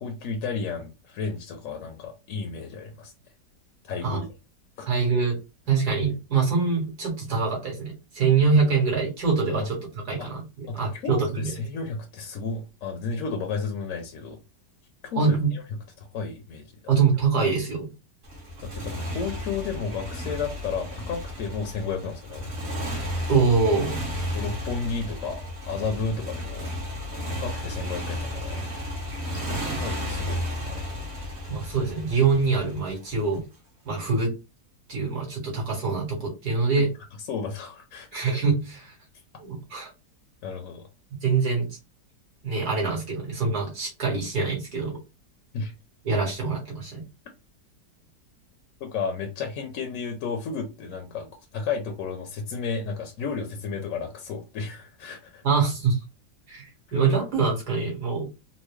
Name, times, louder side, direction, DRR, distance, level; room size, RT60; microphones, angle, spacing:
voice 1, 0.0-3.1 3.9-4.3 4.8-4.9 9.5-9.7 10.2-10.3 10.7-14.4 15.0-15.6 16.0-17.0 18.6-22.5 24.3-26.7 27.4-28.7 29.3-30.8 36.8-36.9 37.3-38.1 40.4-40.9 45.5-45.7 48.8-51.3 51.5-55.4, left 5 dB, 60° left, 0.9 m, -32 dB
voice 2, 4.9-5.4 5.7-9.8 10.1-11.5 15.2-15.5 16.9-17.9 23.3-24.0 31.5-33.4 33.8-34.3 34.9-36.9 38.1-38.9 39.4-39.9 41.2-41.7 42.4-45.0 46.0-47.0 55.4-56.0 56.5-58.3, right 4 dB, 65° right, 2.1 m, -24 dB
Motorcycle, 18.2-33.4, equal, 45° right, 1.3 m, -33 dB
4.2 x 2.0 x 3.1 m
omnidirectional pair, 1.8 m